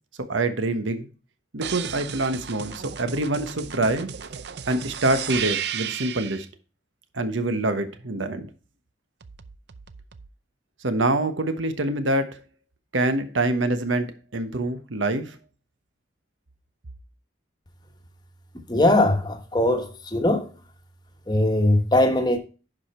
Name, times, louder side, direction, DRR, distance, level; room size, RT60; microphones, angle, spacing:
voice 1, 0.3-1.1 1.5-4.1 4.6-6.4 7.1-8.5 10.8-12.4 12.9-15.4, right 2 dB, 85° right, 1.2 m, -25 dB
sound 1, 1.6-6.4 9.2-10.3, right 8 dB, 60° right, 0.5 m, -34 dB
voice 2, 18.7-20.5 21.3-22.4, left 1 dB, 20° left, 1.1 m, -20 dB
11.0 x 5.0 x 4.4 m
head